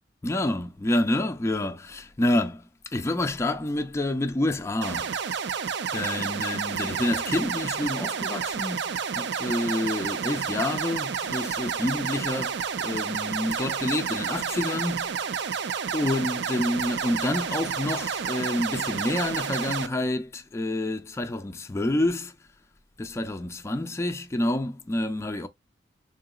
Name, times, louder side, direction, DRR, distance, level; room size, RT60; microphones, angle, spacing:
voice 1, 0.2-5.1 5.9-8.8 9.1-15.7 15.9-22.4 23.0-25.5, left 1 dB, 15° left, 0.3 m, -28 dB
sound 1, 4.8-19.9, right 6 dB, 65° right, 0.4 m, -30 dB
3.8 x 3.7 x 2.2 m
head